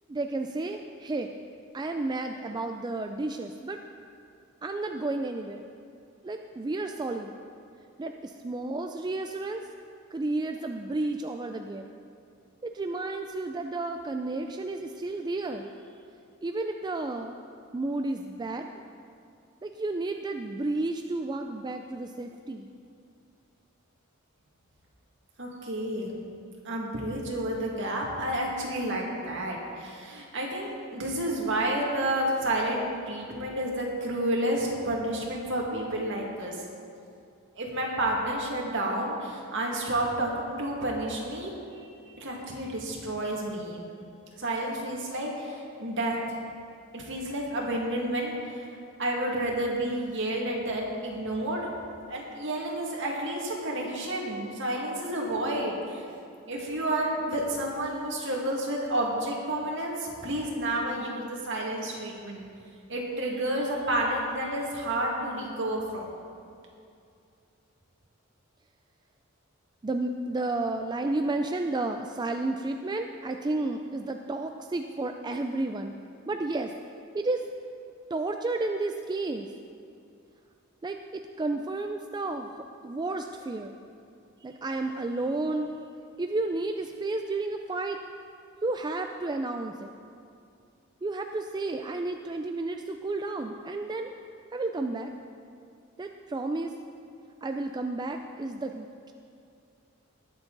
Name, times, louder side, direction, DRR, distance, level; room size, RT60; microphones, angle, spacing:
voice 1, 0.1-1.3 1.7-3.8 4.6-5.7 6.2-7.3 8.0-9.6 10.1-11.9 12.6-15.7 16.4-17.4 17.7-18.7 19.6-22.7 69.8-75.9 76.3-76.7 77.1-77.4 78.1-79.5 80.8-82.5 82.8-83.8 84.4-85.7 86.2-88.0 88.6-89.9 91.0-94.1 94.5-95.1 96.0-96.8 97.4-99.1, right 2 dB, 20° right, 5 dB, 0.4 m, -32 dB
voice 2, 25.4-26.2 26.6-36.6 37.6-41.5 42.2-43.8 44.4-46.4 46.9-48.6 49.0-51.6 52.1-56.1 56.5-62.5 62.9-66.1, right 1 dB, 60° right, -2 dB, 2.1 m, -30 dB
20.0 x 7.1 x 4.0 m, 2.5 s
head